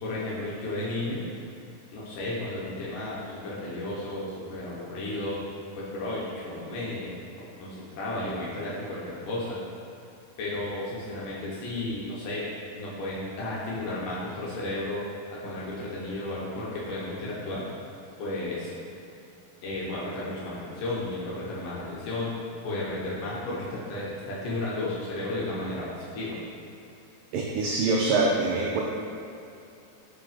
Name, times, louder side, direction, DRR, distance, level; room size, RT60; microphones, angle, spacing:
voice 1, 0.0-1.2 1.9-5.4 5.8-7.2 7.6-9.6 10.4-12.5 12.8-15.1 15.4-17.6 18.2-18.7 19.6-22.3 22.6-26.4, left 2 dB, 70° left, -7 dB, 2.3 m, -33 dB
voice 2, 27.3-28.8, right 3 dB, 90° right, -1 dB, 1.9 m, -24 dB
5.6 x 5.1 x 3.4 m, 2.7 s
omnidirectional pair, 4.4 m